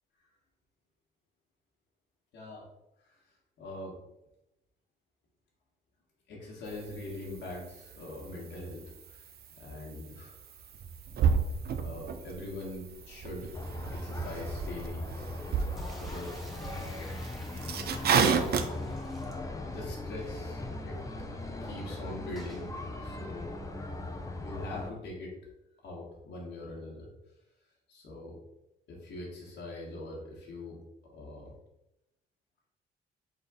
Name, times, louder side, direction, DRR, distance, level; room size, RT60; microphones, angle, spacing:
voice 1, 2.3-2.7 3.0-4.0 6.3-9.3 9.6-10.7 11.8-13.5 13.9-15.1 15.5-15.7 16.0-17.1 18.6-19.0 19.7-21.0 21.6-22.7 23.0-23.5 24.4-25.3 25.8-27.1 27.9-28.4 28.9-30.8 31.1-31.5, left 1 dB, 70° left, -4 dB, 1.4 m, -43 dB
sound 1, 6.7-18.7, right 6 dB, 55° right, 0.6 m, -33 dB
sound 2, 13.5-24.9, left 2 dB, 15° left, 0.6 m, -39 dB
sound 3, 15.8-19.9 20.3-20.4 20.6-20.7 22.4-22.7, equal, ahead, 1.2 m, -51 dB
4.0 x 3.6 x 3.6 m, 0.87 s
supercardioid pair, 60°, 20 cm